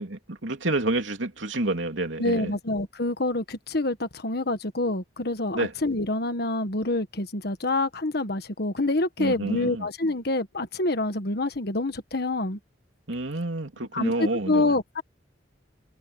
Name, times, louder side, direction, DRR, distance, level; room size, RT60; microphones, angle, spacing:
voice 1, 0.0-2.5 5.5-5.7 9.2-9.9 13.1-14.7, right 2 dB, 80° right, 3.1 m, -29 dB
voice 2, 2.2-12.6 13.9-15.0, left 2 dB, 55° left, 1.5 m, -27 dB
head